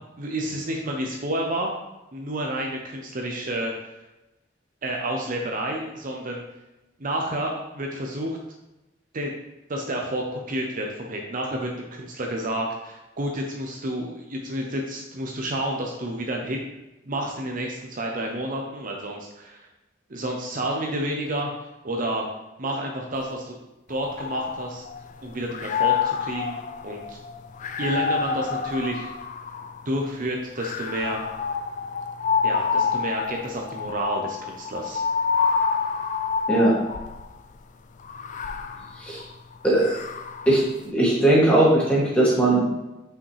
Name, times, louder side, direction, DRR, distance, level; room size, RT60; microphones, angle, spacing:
voice 1, 0.2-1.7 2.1-3.7 4.8-6.4 7.0-8.4 9.1-9.3 9.7-16.6 17.0-19.7 20.1-21.5 21.8-22.3 22.6-23.5 23.9-24.8 25.2-27.2 27.8-29.1 29.9-31.2 32.4-35.0, right 1 dB, 45° right, 1 dB, 0.7 m, -30 dB
sound 1, 23.9-25.1 25.5-29.9 30.6-37.3 38.0-40.6, left 6 dB, 40° left, 0.3 m, -28 dB
voice 2, 39.6-40.0 40.5-40.6 40.8-42.7, right 1 dB, 5° left, -7 dB, 2.1 m, -19 dB
5.7 x 5.0 x 3.3 m, 1.0 s
head